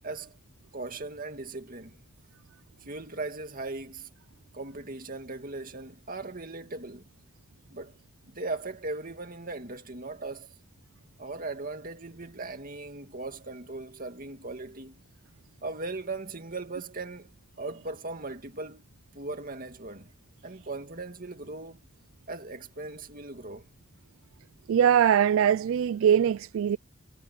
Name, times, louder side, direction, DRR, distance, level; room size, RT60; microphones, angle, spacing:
voice 1, 0.0-0.4 0.7-2.0 2.8-4.1 4.5-7.1 7.7-8.0 8.3-10.5 11.2-15.0 15.6-18.8 19.1-20.1 20.4-21.8 22.3-23.7, right 3 dB, 45° right, 2.3 m, -38 dB
voice 2, 24.7-26.8, right 9 dB, 70° right, 0.3 m, -22 dB
head